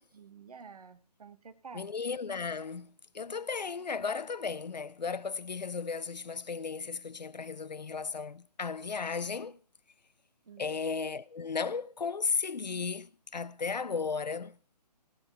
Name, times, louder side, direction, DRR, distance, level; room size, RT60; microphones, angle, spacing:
voice 1, 0.0-1.9 10.4-10.8, right 6 dB, 60° right, 1.0 m, -50 dB
voice 2, 1.7-9.6 10.6-14.6, left 5 dB, 85° left, 0.5 m, -35 dB
15.0 x 8.9 x 4.2 m
figure-of-eight pair, 140°, 21 cm